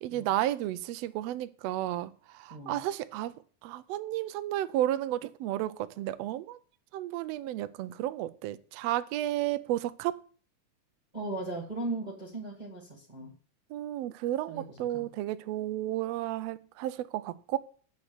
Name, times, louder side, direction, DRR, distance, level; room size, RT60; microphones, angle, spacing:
voice 1, 0.0-3.4 3.6-6.6 6.9-10.2 13.7-17.6, right 13 dB, 80° right, 1.5 m, -32 dB
voice 2, 11.1-13.3 14.5-15.1, right 2 dB, 15° right, 1.9 m, -38 dB
7.8 x 7.4 x 8.0 m
omnidirectional pair, 3.5 m